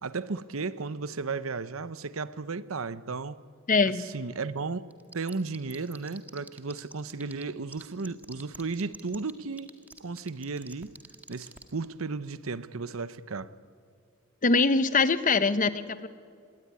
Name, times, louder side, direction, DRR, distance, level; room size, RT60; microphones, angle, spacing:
voice 1, 0.0-3.4 4.0-4.8 5.1-9.7 10.0-11.0 11.3-13.5, right 4 dB, 80° right, 0.8 m, -34 dB
voice 2, 3.7-4.1 14.4-16.1, left 4 dB, 40° left, 0.9 m, -23 dB
sound 1, 4.9-7.4 7.7-11.6, right 2 dB, 10° right, 1.7 m, -45 dB
25.0 x 20.5 x 9.7 m
head